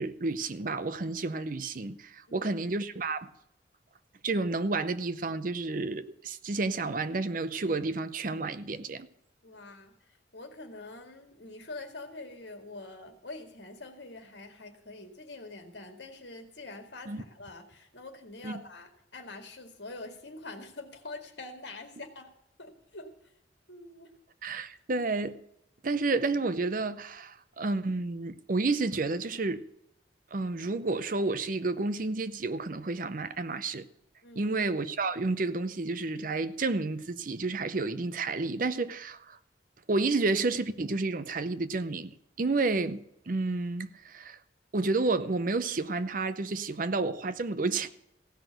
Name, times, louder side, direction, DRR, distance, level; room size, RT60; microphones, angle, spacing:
voice 1, 0.0-3.3 4.2-9.1 17.1-17.2 18.4-18.6 24.4-25.4 25.8-29.6 30.3-33.9 34.4-39.4 39.9-43.0 43.3-44.4 44.7-47.9, right 3 dB, 45° right, 0.6 m, -30 dB
voice 2, 9.4-22.3 22.6-23.1 23.7-24.1 34.2-34.6 42.4-42.6, left 2 dB, 70° left, 2.1 m, -45 dB
16.0 x 6.1 x 7.8 m
head